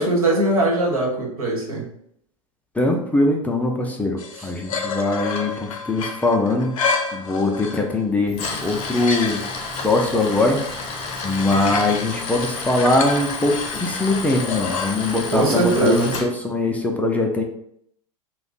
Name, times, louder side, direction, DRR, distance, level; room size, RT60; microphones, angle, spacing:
voice 1, 0.0-1.8 4.3-4.5 15.3-16.2, right 2 dB, 85° right, -2 dB, 1.1 m, -20 dB
voice 2, 2.8-6.8 7.1-9.4 9.7-10.6 11.2-16.0 16.2-17.4, left 2 dB, 10° left, 1 dB, 0.5 m, -21 dB
sound 1, 4.2-8.0 8.5-9.6 11.0-14.9, left 4 dB, 70° left, 0.5 m, -30 dB
Tools, 8.3-16.2, left 4 dB, 35° left, 0.8 m, -31 dB
2.5 x 2.2 x 3.9 m, 0.70 s
hypercardioid pair, 90°, 18 cm